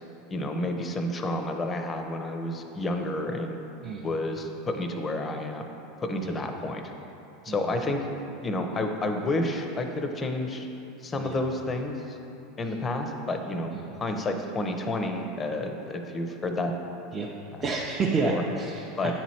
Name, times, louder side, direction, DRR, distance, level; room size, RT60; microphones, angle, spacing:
voice 1, 0.3-3.6 4.0-5.6 6.0-6.8 7.4-8.1 8.4-10.7 11.0-12.2 12.6-13.7 14.0-16.7 17.5-17.6 18.2-18.4 19.0-19.1, left 2 dB, 25° left, 5 dB, 0.6 m, -30 dB
voice 2, 17.6-19.1, right 4 dB, 25° right, -3 dB, 0.5 m, -30 dB
8.8 x 3.1 x 4.3 m, 2.9 s
hypercardioid pair, 105°, 0 cm